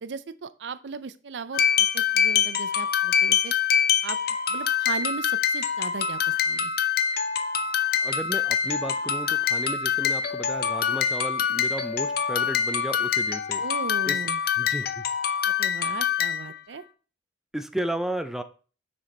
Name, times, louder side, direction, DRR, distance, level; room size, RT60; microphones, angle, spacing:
voice 1, 0.0-3.5 4.0-4.2 4.5-6.7 13.6-14.4 15.5-16.8, right 4 dB, 70° right, 14 dB, 0.5 m, -37 dB
sound 1, 1.5-16.6, left 8 dB, 55° left, 0.7 m, -25 dB
voice 2, 8.0-13.6 14.0-14.2 14.6-15.0 17.5-18.4, right 1 dB, ahead, 8 dB, 0.5 m, -33 dB
7.0 x 6.3 x 4.2 m, 0.38 s
head